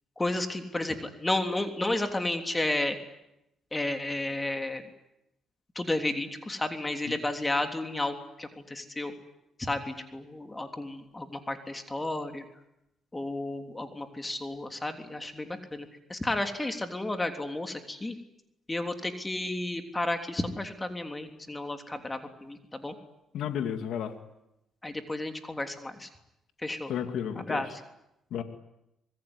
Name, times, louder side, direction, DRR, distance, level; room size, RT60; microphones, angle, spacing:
voice 1, 0.2-3.0 3.7-4.8 5.7-9.1 9.6-12.4 13.1-18.2 18.7-22.9 24.8-26.1 26.6-26.9 27.4-27.8, left 2 dB, 15° left, 6 dB, 3.2 m, -32 dB
voice 2, 23.3-24.1 26.9-27.6 28.3-28.4, left 9 dB, 80° left, 7 dB, 2.5 m, -32 dB
26.0 x 21.0 x 9.8 m, 0.85 s
cardioid pair, 90°, 0 cm